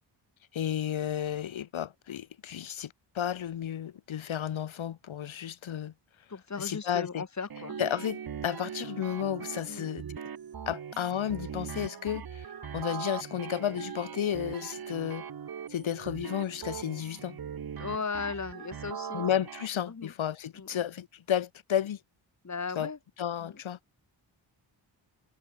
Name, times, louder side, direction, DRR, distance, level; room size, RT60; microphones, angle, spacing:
voice 1, 0.5-5.9 6.6-7.2 7.8-10.0 10.7-15.3 15.7-17.4 19.1-22.0 22.8-22.9 23.2-23.8, left 10 dB, 85° left, 2.0 m, -32 dB
voice 2, 6.3-7.8 9.7-9.9 17.8-19.3 19.9-20.1 20.5-20.8 22.4-23.0 23.4-23.6, left 5 dB, 35° left, 6.7 m, -37 dB
sound 1, 7.5-19.7, right 8 dB, 50° right, 1.5 m, -40 dB
wide cardioid pair, 140°, 46 cm